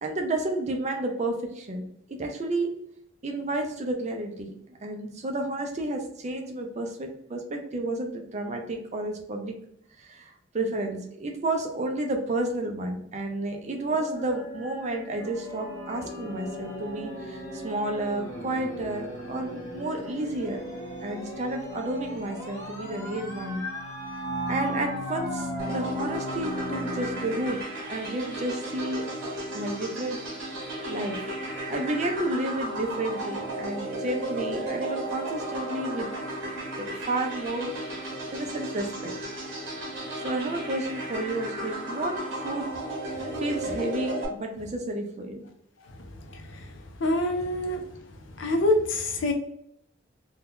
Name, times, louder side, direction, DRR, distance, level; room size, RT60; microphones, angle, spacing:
voice 1, 0.0-2.7 3.2-4.5 4.8-9.5 10.0-20.6 21.0-23.6 24.5-30.2 30.9-31.2 31.7-36.1 36.8-37.7 38.0-39.2 40.1-42.7 43.4-45.4, right 2 dB, 35° right, 3 dB, 0.5 m, -31 dB
sound 1, 13.9-27.5, equal, 15° left, 0.9 m, -36 dB
sound 2, 25.6-44.2, right 1 dB, 65° right, 1.0 m, -34 dB
voice 2, 46.3-46.7 47.0-47.8 48.4-49.3, left 1 dB, 65° left, 4 dB, 0.5 m, -26 dB
2.7 x 2.2 x 3.5 m, 0.72 s
head